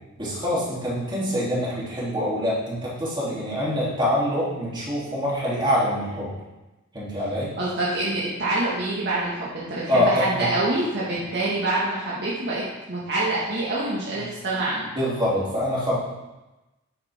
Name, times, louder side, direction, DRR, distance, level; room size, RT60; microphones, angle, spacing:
voice 1, 0.2-6.3 6.9-7.5 9.9-10.5 11.2-11.3 14.1-14.3 14.9-15.9, equal, 20° right, -8 dB, 3.4 m, -25 dB
voice 2, 7.6-14.9, right 2 dB, 55° right, -7 dB, 2.0 m, -26 dB
9.6 x 8.4 x 3.7 m, 1.1 s
head